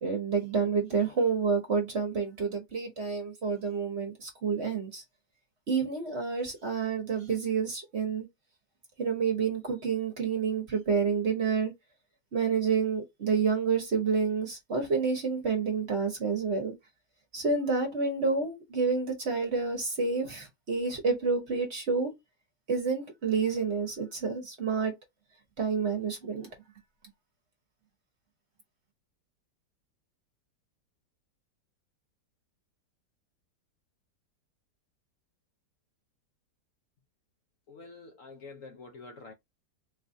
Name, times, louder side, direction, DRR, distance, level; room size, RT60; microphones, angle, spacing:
voice 1, 0.0-5.0 5.7-8.3 9.0-11.7 12.3-16.7 17.3-22.1 22.7-24.9 25.6-26.5, right 5 dB, 45° right, 1.0 m, -29 dB
voice 2, 37.7-39.3, left 3 dB, 65° left, 0.8 m, -47 dB
4.1 x 2.4 x 2.6 m
omnidirectional pair, 1.9 m